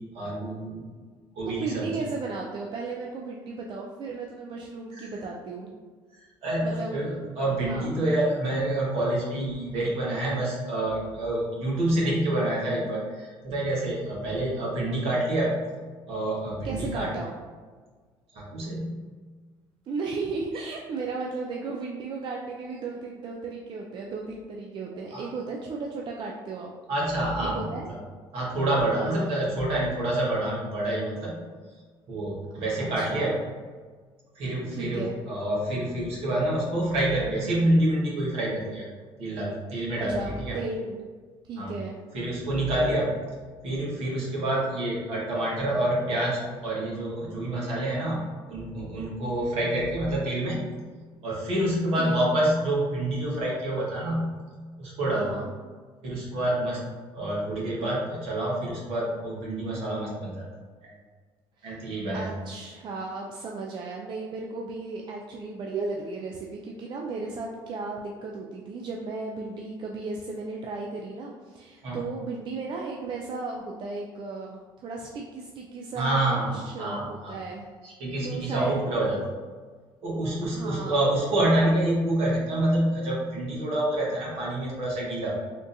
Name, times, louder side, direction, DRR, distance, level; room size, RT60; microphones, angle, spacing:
voice 1, 0.1-0.9 1.3-1.9 4.9-5.1 6.4-15.6 16.1-17.1 18.3-19.1 25.1-25.2 26.9-28.0 28.3-31.4 32.1-33.3 34.3-38.8 39.2-40.6 41.6-41.7 42.1-43.1 43.6-50.7 51.2-54.3 54.8-55.4 56.0-56.8 57.1-60.5 60.8-60.9 61.6-62.3 71.8-72.0 75.9-77.3 77.8-79.2 80.0-85.3, right 1 dB, 70° right, -5 dB, 1.3 m, -27 dB
voice 2, 1.5-5.7 6.6-7.0 7.6-7.9 16.6-17.4 19.9-26.7 27.4-27.9 28.8-29.4 32.8-33.4 34.7-35.2 40.0-41.0 41.5-42.0 52.0-52.1 55.1-55.5 61.6-61.8 62.1-77.7 78.2-78.9 80.4-81.0, right 3 dB, 50° right, -1 dB, 0.4 m, -35 dB
3.6 x 2.7 x 2.5 m, 1.5 s
supercardioid pair, 75°, 11 cm